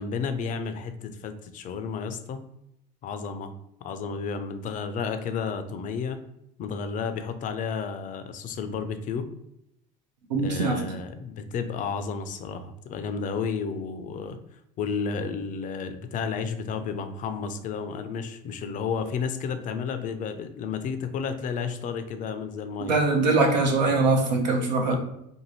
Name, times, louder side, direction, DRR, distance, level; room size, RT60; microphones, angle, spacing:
voice 1, 0.0-2.4 3.0-3.5 3.8-6.2 6.6-9.3 10.4-14.4 14.8-23.0 24.8-25.0, left 5 dB, 40° left, 9 dB, 0.4 m, -32 dB
voice 2, 10.3-10.9 22.8-25.0, right 3 dB, 90° right, 2 dB, 0.6 m, -22 dB
2.7 x 2.5 x 2.8 m, 0.79 s
hypercardioid pair, 80°, 21 cm